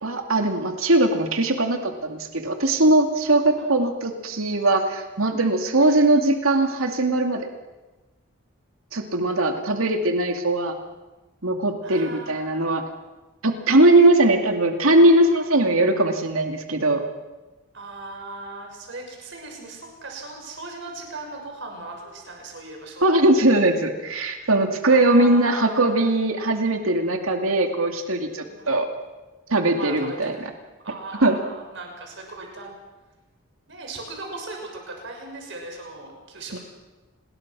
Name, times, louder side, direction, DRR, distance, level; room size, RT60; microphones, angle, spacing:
voice 1, 0.0-7.5 8.9-10.8 11.4-12.8 13.4-17.0 23.0-28.9 29.5-30.5 31.2-31.4 36.5-36.6, right 2 dB, 80° right, 4 dB, 2.4 m, -20 dB
voice 2, 11.8-12.7 17.7-23.1 24.4-24.5 24.9-26.1 28.5-28.7 29.7-30.5 30.8-32.7 33.7-36.6, right 2 dB, 60° right, 1 dB, 6.7 m, -38 dB
29.0 x 21.5 x 6.2 m, 1.2 s
head